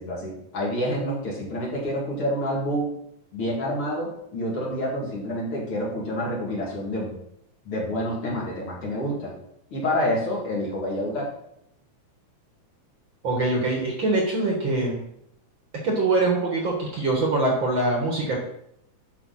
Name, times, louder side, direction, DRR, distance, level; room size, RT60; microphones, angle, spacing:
voice 1, 0.0-2.9 3.3-7.2 7.6-9.3 9.7-11.3, equal, 50° left, -5 dB, 3.3 m, -28 dB
voice 2, 13.2-15.0 15.8-18.4, right 2 dB, 45° right, -1 dB, 2.1 m, -23 dB
11.0 x 5.7 x 4.3 m, 0.75 s
omnidirectional pair, 3.4 m